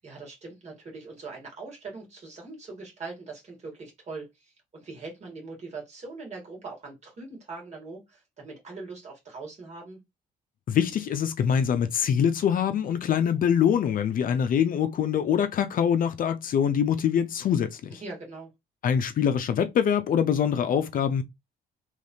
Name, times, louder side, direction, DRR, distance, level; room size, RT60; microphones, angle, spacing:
voice 1, 0.0-10.0 18.0-18.5, right 3 dB, 40° right, 1.8 m, -41 dB
voice 2, 10.7-18.0 18.8-21.2, left 8 dB, 50° left, 0.5 m, -24 dB
3.4 x 3.2 x 2.6 m
cardioid pair, 110°, 18 cm